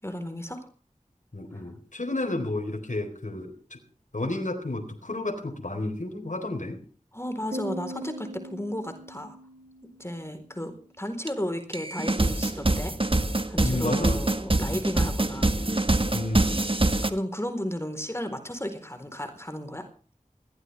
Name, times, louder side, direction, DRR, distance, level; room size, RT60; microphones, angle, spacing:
voice 1, 0.0-0.7 1.5-1.6 7.1-9.4 9.8-13.0 13.5-15.5 17.0-19.9, equal, 20° left, 7 dB, 4.2 m, -34 dB
voice 2, 1.3-3.8 4.1-6.8 13.6-14.2 14.7-14.8 16.1-16.5, left 2 dB, 65° left, 4 dB, 4.1 m, -31 dB
Piano, 7.5-10.9, right 1 dB, 85° right, 3.1 m, -41 dB
sound 1, 11.3-11.4 11.7-17.1, right 2 dB, 40° right, 1.7 m, -25 dB
21.0 x 17.0 x 3.5 m, 0.40 s
wide cardioid pair, 45°, 14 cm